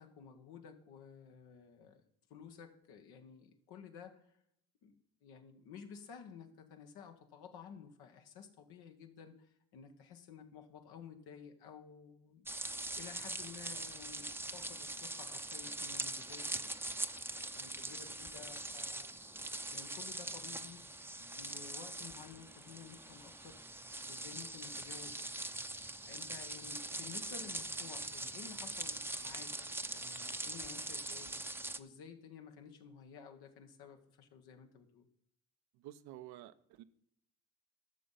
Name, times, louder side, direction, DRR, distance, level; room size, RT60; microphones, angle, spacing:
voice 1, 0.0-2.0 2.3-4.2 4.8-12.5 12.9-16.9 17.5-19.1 19.7-23.6 24.1-25.2 25.5-25.6 26.1-31.4 31.8-35.0, left 7 dB, 85° left, 5 dB, 1.5 m, -53 dB
sound 1, 12.5-31.8, right 2 dB, 5° right, 0.6 m, -42 dB
voice 2, 35.7-36.8, right 13 dB, 80° right, 12 dB, 0.7 m, -51 dB
11.5 x 6.8 x 5.6 m, 0.74 s
supercardioid pair, 65°, 38 cm